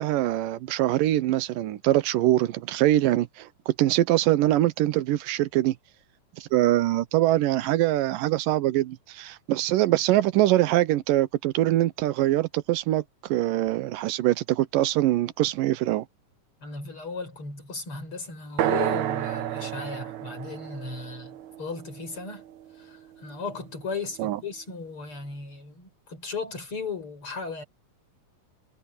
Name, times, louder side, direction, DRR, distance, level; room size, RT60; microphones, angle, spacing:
voice 1, 0.0-5.7 6.4-16.1 24.2-24.4, right 15 dB, 90° right, 2.5 m, -23 dB
voice 2, 16.6-22.4 22.8-27.6, left 4 dB, 40° left, 7.6 m, -36 dB
sound 1, 18.6-22.5, right 12 dB, 70° right, 2.3 m, -30 dB
omnidirectional pair, 3.8 m